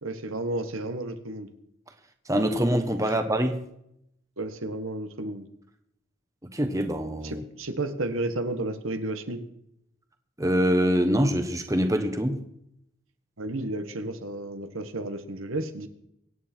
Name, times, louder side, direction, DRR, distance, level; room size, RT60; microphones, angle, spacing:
voice 1, 0.0-1.5 4.4-5.5 7.2-9.4 13.4-15.9, right 2 dB, 80° right, 8 dB, 1.5 m, -32 dB
voice 2, 2.3-3.6 6.5-7.4 10.4-12.4, equal, 15° right, 7 dB, 1.1 m, -24 dB
24.0 x 9.5 x 4.5 m, 0.75 s
head